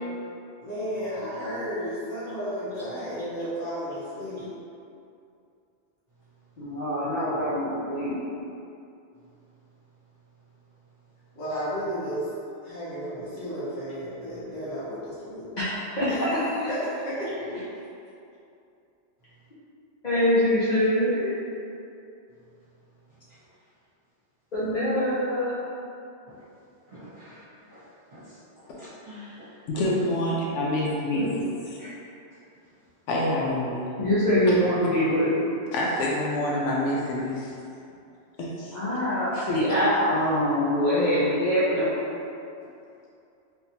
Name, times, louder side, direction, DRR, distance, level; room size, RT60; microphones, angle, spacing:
voice 1, 0.6-4.5 11.3-12.3 12.6-15.5 16.1-17.3, equal, 70° left, -11 dB, 1.3 m, -33 dB
voice 2, 6.6-8.1 15.6-16.3 20.0-21.3 24.5-25.6 31.1-31.3 31.8-31.9 34.0-35.3 38.7-42.0, equal, 45° left, -13 dB, 0.7 m, -24 dB
voice 3, 26.9-27.4 27.7-27.8 28.1-28.4 28.6-29.5, left 1 dB, 50° right, -13 dB, 1.1 m, -46 dB
voice 4, 29.7-31.8 33.1-33.8 35.7-37.6 38.4-38.8 39.5-39.6, left 1 dB, 90° left, -4 dB, 0.9 m, -27 dB
3.5 x 2.9 x 2.7 m, 2.6 s
omnidirectional pair, 1.2 m